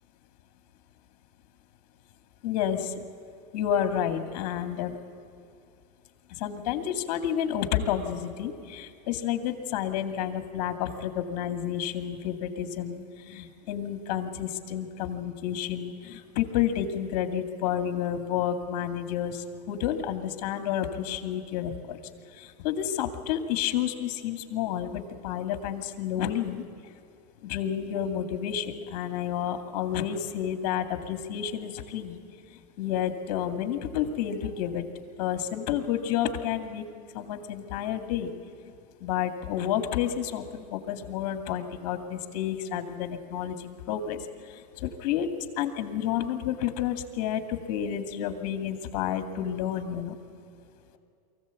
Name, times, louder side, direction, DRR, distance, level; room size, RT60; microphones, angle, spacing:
voice 1, 2.4-2.9 3.5-5.0 6.3-22.0 22.3-26.6 27.4-32.2 32.5-34.8 35.2-36.8 37.1-38.3 38.6-38.7 39.0-45.3 45.6-50.2, left 10 dB, 60° left, 8 dB, 2.2 m, -30 dB
23.5 x 15.5 x 8.3 m, 2.5 s
supercardioid pair, 140°, 21 cm